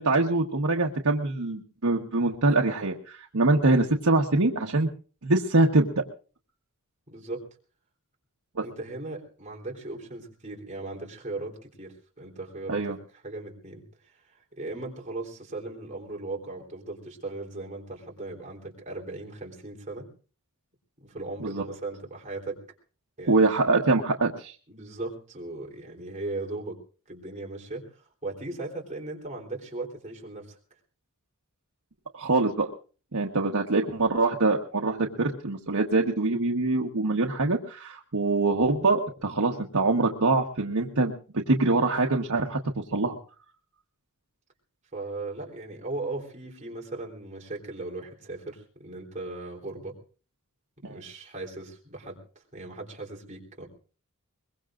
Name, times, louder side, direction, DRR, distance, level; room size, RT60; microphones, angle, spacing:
voice 1, 0.0-4.9 5.2-6.0 8.6-8.7 12.7-13.0 21.4-21.6 23.3-24.5 32.1-32.7 33.1-41.1 41.5-43.2 50.8-51.0, right 3 dB, 80° right, 0 dB, 1.3 m, -24 dB
voice 2, 7.1-7.4 8.6-20.1 21.0-22.6 23.2-23.5 24.7-26.8 27.1-27.9 28.2-30.6 44.9-50.0 50.8-52.2 52.5-53.7, right 2 dB, 35° right, 0 dB, 3.5 m, -38 dB
22.5 x 21.5 x 2.5 m, 0.39 s
head